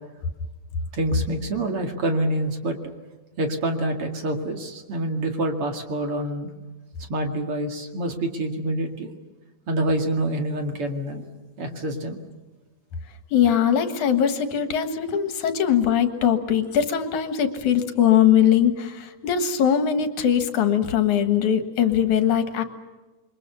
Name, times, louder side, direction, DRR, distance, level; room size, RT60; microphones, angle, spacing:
voice 1, 0.9-2.8 3.4-6.5 7.1-9.1 9.7-11.3 11.6-12.2, right 1 dB, 50° right, 4 dB, 3.0 m, -26 dB
voice 2, 13.3-22.6, left 9 dB, 75° left, 8 dB, 3.0 m, -21 dB
28.5 x 23.5 x 6.9 m, 1.2 s
omnidirectional pair, 3.4 m